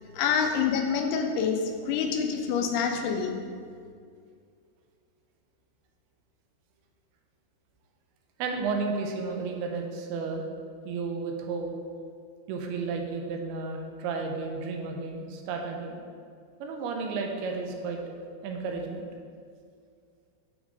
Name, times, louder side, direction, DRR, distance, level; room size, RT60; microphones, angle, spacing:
voice 1, 0.0-3.3, left 6 dB, 85° left, 4 dB, 2.6 m, -27 dB
voice 2, 8.4-10.5 10.9-11.7 12.5-16.0 16.6-18.0 18.4-19.1, right 4 dB, 85° right, 2 dB, 2.6 m, -32 dB
7.9 x 3.6 x 3.6 m, 2.2 s
omnidirectional pair, 4.5 m